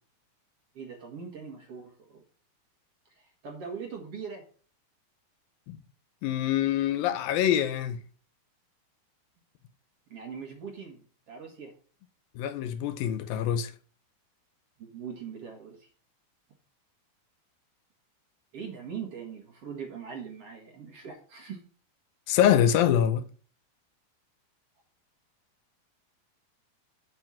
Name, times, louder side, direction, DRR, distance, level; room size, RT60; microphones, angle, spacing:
voice 1, 0.7-2.2 3.2-4.5 10.1-11.7 14.8-15.9 18.5-21.6, right 6 dB, 50° right, 2.2 m, -41 dB
voice 2, 6.2-8.0 12.4-13.7 22.3-23.2, left 10 dB, 80° left, 2.4 m, -25 dB
8.0 x 5.5 x 7.4 m
omnidirectional pair, 4.3 m